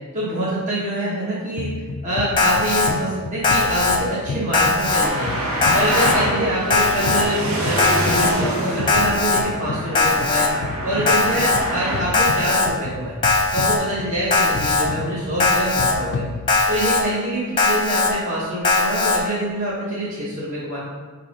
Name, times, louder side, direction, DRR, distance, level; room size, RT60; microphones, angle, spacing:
voice 1, 0.1-1.7 2.0-5.3 5.7-10.5 10.8-13.1 13.5-16.2 16.7-20.8, right 1 dB, 35° right, -8 dB, 1.0 m, -25 dB
sound 1, 1.6-16.9, left 3 dB, 55° left, 0.4 m, -32 dB
Alarm, 2.4-2.9 3.4-4.0 4.5-5.1 5.6-6.1 6.7-7.2 7.8-8.3 8.9-9.4 9.9-10.5 11.1-11.6 12.1-12.7 13.2-13.8 14.3-14.8 15.4-15.9 16.5-17.0 17.6-18.1 18.6-19.2, left 3 dB, 20° left, 0.7 m, -19 dB
Traffic noise roadway noise, 4.8-12.0, right 1 dB, 80° right, 1.5 m, -26 dB
6.8 x 3.0 x 5.3 m, 1.5 s
head